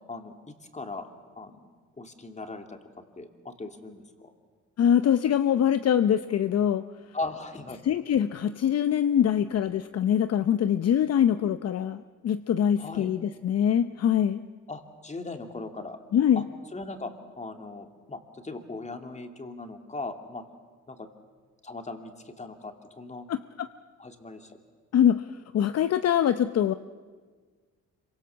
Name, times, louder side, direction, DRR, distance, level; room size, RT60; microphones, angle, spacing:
voice 1, 0.1-1.1 1.4-1.7 2.0-2.8 3.2-4.3 7.1-7.8 12.8-13.1 14.7-16.0 16.4-16.5 16.7-20.4 20.9-21.1 21.6-23.3 24.0-24.5, left 3 dB, 25° left, 6 dB, 2.7 m, -39 dB
voice 2, 4.8-6.8 7.8-14.4 16.1-16.4 23.3-23.7 24.9-25.3 25.5-26.7, left 9 dB, 55° left, 11 dB, 0.8 m, -23 dB
26.5 x 24.0 x 7.1 m, 1.5 s
cardioid pair, 90°, 30 cm